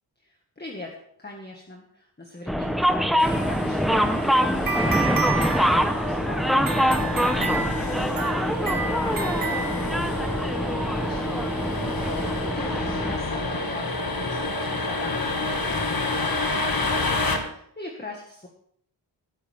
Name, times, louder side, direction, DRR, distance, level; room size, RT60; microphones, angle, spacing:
voice 1, 0.2-8.0 8.5-18.5, left 2 dB, 25° left, 0 dB, 1.7 m, -41 dB
sound 1, 2.5-13.2, equal, ahead, 0.8 m, -24 dB
sound 2, 3.2-17.4, left 2 dB, 50° left, 1.9 m, -30 dB
sound 3, 3.9-10.4, right 5 dB, 50° right, 1.9 m, -31 dB
17.5 x 10.0 x 3.5 m, 0.67 s
wide cardioid pair, 125°, 44 cm